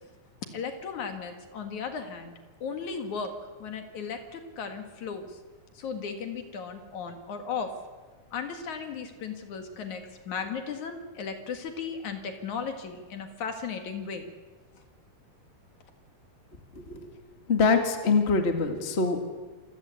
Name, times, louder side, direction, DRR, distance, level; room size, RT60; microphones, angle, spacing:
voice 1, 0.5-2.3 2.6-3.3 3.6-5.4 5.7-7.7 8.3-14.3 14.7-14.8, left 6 dB, 60° left, 6 dB, 3.1 m, -36 dB
voice 2, 16.7-17.1 17.5-19.2, left 4 dB, 25° left, 5 dB, 1.7 m, -24 dB
27.5 x 16.5 x 8.3 m, 1.3 s
omnidirectional pair, 4.1 m